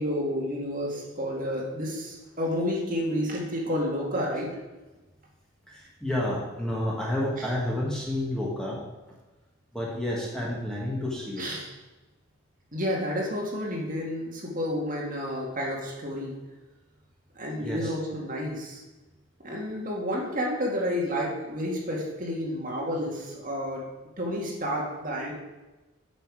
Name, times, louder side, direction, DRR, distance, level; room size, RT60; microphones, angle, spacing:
voice 1, 0.0-4.5 11.4-11.7 12.7-16.3 17.3-18.8 19.4-23.8 24.2-25.3, equal, 40° right, -2 dB, 1.9 m, -30 dB
voice 2, 5.7-8.8 9.7-11.5 17.6-17.9, left 1 dB, 5° left, -5 dB, 1.6 m, -30 dB
9.2 x 7.1 x 4.8 m, 1.1 s
head